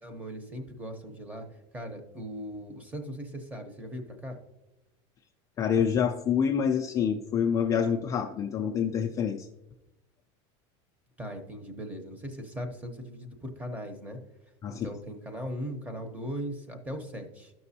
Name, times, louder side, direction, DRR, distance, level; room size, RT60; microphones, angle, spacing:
voice 1, 0.0-4.4 11.2-14.2 14.7-17.5, equal, 10° right, 6 dB, 0.7 m, -39 dB
voice 2, 5.6-9.5 14.6-14.9, left 7 dB, 20° left, 3 dB, 0.3 m, -27 dB
13.0 x 6.0 x 2.7 m, 0.97 s
supercardioid pair, 155°, 15 cm